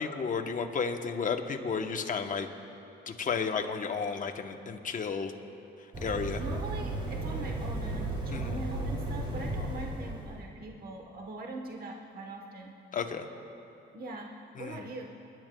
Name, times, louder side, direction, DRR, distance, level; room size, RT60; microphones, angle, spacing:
voice 1, 0.0-2.5 3.1-5.3 6.0-6.4 8.3-8.5 12.9-13.3 14.6-14.8, left 5 dB, 40° left, 5 dB, 0.9 m, -32 dB
sound 1, 5.9-10.4, right 2 dB, 25° right, 1.7 m, -34 dB
voice 2, 6.4-12.8 13.9-15.1, right 2 dB, 50° right, 1 dB, 1.1 m, -42 dB
29.0 x 10.5 x 2.2 m, 2.7 s
cardioid pair, 90°, 20 cm